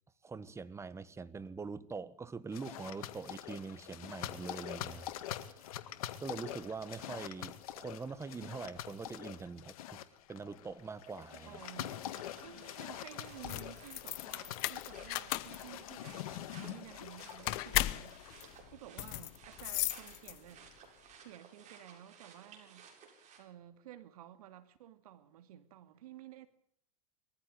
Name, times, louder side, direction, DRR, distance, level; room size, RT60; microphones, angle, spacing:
voice 1, 0.2-5.8 6.2-10.0 10.3-11.6, right 4 dB, 15° right, 1.4 m, -44 dB
sound 1, 2.5-18.6, left 12 dB, 70° left, 2.0 m, -45 dB
voice 2, 11.5-12.0 12.4-20.7 21.2-23.1 23.4-26.5, right 12 dB, 75° right, 2.5 m, -53 dB
sound 2, 11.6-23.4, right 6 dB, 40° right, 7.8 m, -58 dB
sound 3, 13.3-20.7, left 18 dB, 55° left, 1.2 m, -37 dB
22.0 x 15.0 x 7.9 m
hypercardioid pair, 105°, 19 cm